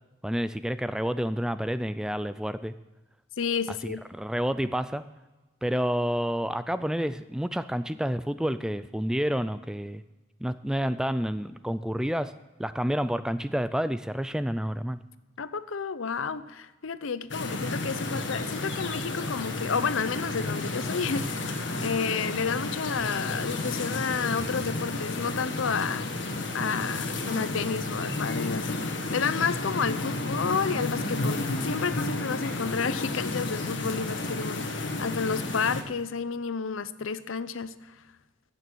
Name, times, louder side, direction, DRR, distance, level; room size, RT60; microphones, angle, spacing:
voice 1, 0.2-2.7 3.8-5.0 5.6-10.0 10.4-12.3 12.6-15.0, equal, 5° right, 13 dB, 0.3 m, -29 dB
voice 2, 3.4-4.0 15.4-26.1 26.5-37.7, left 5 dB, 90° left, 14 dB, 0.6 m, -31 dB
sound 1, 17.3-35.8, left 2 dB, 65° left, 1.4 m, -32 dB
16.0 x 6.7 x 6.2 m, 1.2 s
head